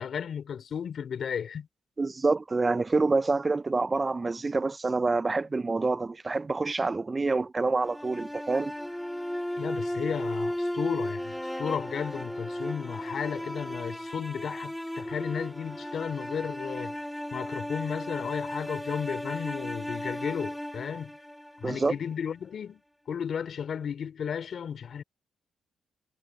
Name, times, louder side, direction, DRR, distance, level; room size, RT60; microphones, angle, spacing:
voice 1, 0.0-1.7 9.6-17.0 17.3-21.1 21.6-22.8 23.1-25.0, left 7 dB, 65° left, 3.5 m, -34 dB
voice 2, 2.0-8.7 21.6-21.9, right 3 dB, 30° right, 0.7 m, -27 dB
sound 1, 7.8-22.0, left 1 dB, 5° left, 3.2 m, -35 dB
supercardioid pair, 50°, 0 cm